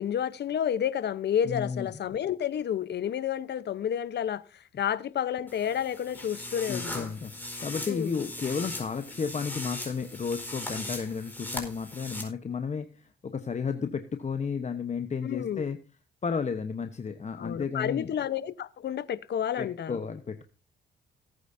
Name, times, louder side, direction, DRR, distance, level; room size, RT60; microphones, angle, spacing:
voice 1, 0.0-7.1 7.9-8.1 15.2-15.7 17.4-20.0, left 9 dB, 60° left, 1.0 m, -30 dB
voice 2, 1.4-1.9 6.7-15.8 16.2-18.1 19.6-20.5, left 5 dB, 35° left, 1.1 m, -33 dB
sound 1, 5.5-12.2, left 1 dB, 10° left, 4.6 m, -39 dB
18.0 x 9.1 x 2.7 m
cardioid pair, 90°, 20 cm